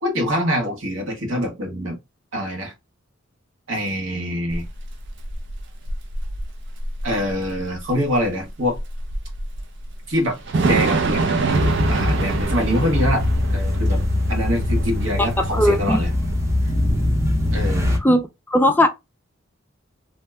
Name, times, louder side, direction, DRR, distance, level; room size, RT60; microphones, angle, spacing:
voice 1, 0.0-2.0 2.3-2.7 3.7-4.6 7.0-8.8 10.1-14.0 14.3-16.1 17.5-18.0, equal, 80° right, 1.2 m, -25 dB
Thunder / Rain, 4.5-18.0, right 3 dB, 60° right, 0.5 m, -27 dB
sound 1, 11.5-18.0, left 1 dB, 15° right, 0.7 m, -22 dB
voice 2, 15.2-16.0 18.0-18.2 18.5-18.9, left 1 dB, 10° left, 0.3 m, -18 dB
2.7 x 2.1 x 3.3 m
head